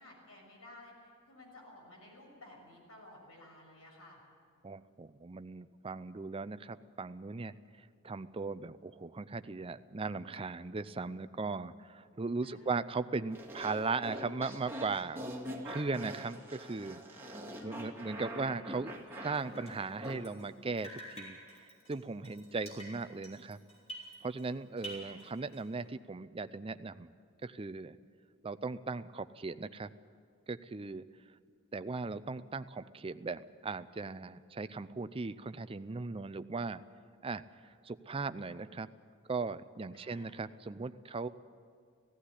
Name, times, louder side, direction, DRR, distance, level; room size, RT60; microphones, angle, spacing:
voice 1, 0.0-4.2 12.4-12.8 17.5-18.2 24.9-25.3 39.9-40.4, left 1 dB, 85° left, -1 dB, 6.5 m, -55 dB
voice 2, 4.6-7.5 8.0-15.3 15.6-23.6 24.2-27.1 27.4-28.0 28.4-29.9 30.5-31.0 31.7-36.8 37.2-37.4 37.8-38.9 39.3-41.3, right 4 dB, 25° right, 13 dB, 0.5 m, -38 dB
sound 1, 13.3-20.2, equal, 10° right, 2.0 m, -44 dB
Drip, 19.3-20.5 20.8-24.5 24.8-25.8, right 1 dB, 30° left, 5.5 m, -49 dB
16.5 x 16.5 x 10.0 m, 2.2 s
head